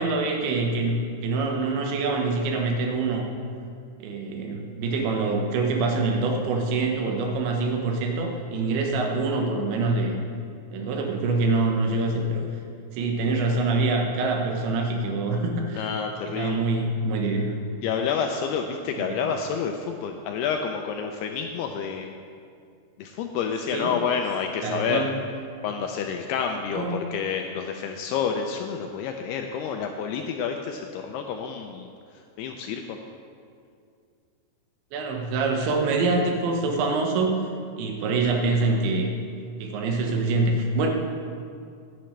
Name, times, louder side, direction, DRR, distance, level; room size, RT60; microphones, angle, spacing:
voice 1, 0.0-3.3 4.0-10.2 10.7-12.4 12.9-15.9 16.3-17.5 19.0-19.2 23.7-23.9 24.6-25.2 26.7-27.1 34.9-37.4 37.8-39.1 39.6-40.9, right 3 dB, 80° right, 2 dB, 3.5 m, -25 dB
voice 2, 15.8-16.6 17.8-22.1 23.0-25.0 25.6-31.9 32.4-33.0, left 6 dB, 85° left, 3 dB, 2.4 m, -29 dB
16.0 x 10.5 x 3.3 m, 2.3 s
omnidirectional pair, 5.1 m